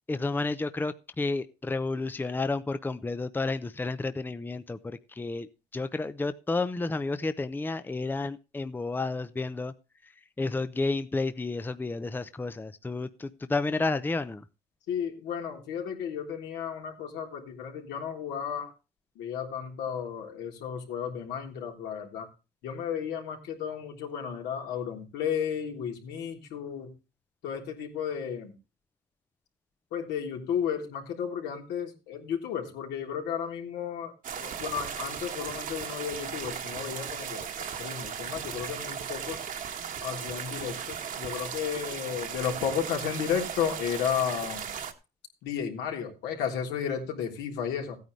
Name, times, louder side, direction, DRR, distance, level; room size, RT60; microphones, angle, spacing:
voice 1, 0.1-9.7 10.0-10.1 10.4-14.4, left 3 dB, 10° left, 12 dB, 0.7 m, -31 dB
voice 2, 14.9-18.7 19.2-22.3 22.6-26.9 27.4-28.5 29.9-39.4 40.0-44.7 45.4-48.0, left 8 dB, 85° left, 2 dB, 3.5 m, -33 dB
sound 1, 34.2-44.9, right 8 dB, 50° right, 1.6 m, -37 dB
15.5 x 9.3 x 3.2 m, 0.30 s
cardioid pair, 110°, 17 cm